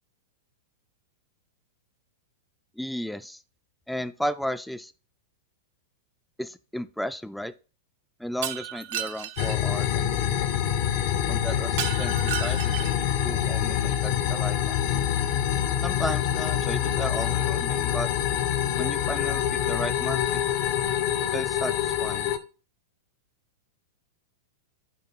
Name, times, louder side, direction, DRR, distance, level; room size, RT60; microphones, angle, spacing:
voice 1, 2.8-3.4 3.9-4.9 6.4-7.5 8.2-10.5 11.3-14.8 15.8-18.1 18.8-20.4 21.3-22.4, equal, ahead, 13 dB, 0.3 m, -34 dB
Shatter, 8.4-9.6 11.8-13.1, right 12 dB, 55° right, 0.5 m, -33 dB
sound 1, 9.4-22.4, left 10 dB, 55° left, 0.6 m, -26 dB
Wind instrument woodwind instrument, 9.7-14.0, left 6 dB, 85° left, 2.2 m, -49 dB
9.2 x 3.6 x 4.1 m, 0.35 s
figure-of-eight pair, 95°, 0 cm